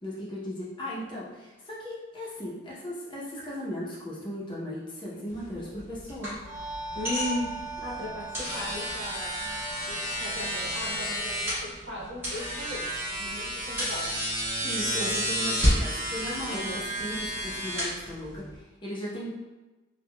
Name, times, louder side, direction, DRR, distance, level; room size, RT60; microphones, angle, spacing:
voice 1, 0.0-6.4 14.6-19.3, equal, 25° left, -6 dB, 0.7 m, -37 dB
sound 1, 5.3-18.6, equal, 10° right, 1.5 m, -31 dB
sound 2, 6.4-11.6, right 3 dB, 50° right, 1.2 m, -41 dB
voice 2, 6.9-7.5 7.8-9.3 9.8-14.4 14.9-15.2 16.5-16.8, left 1 dB, 70° right, -6 dB, 0.9 m, -37 dB
3.5 x 2.2 x 2.2 m, 1.1 s
head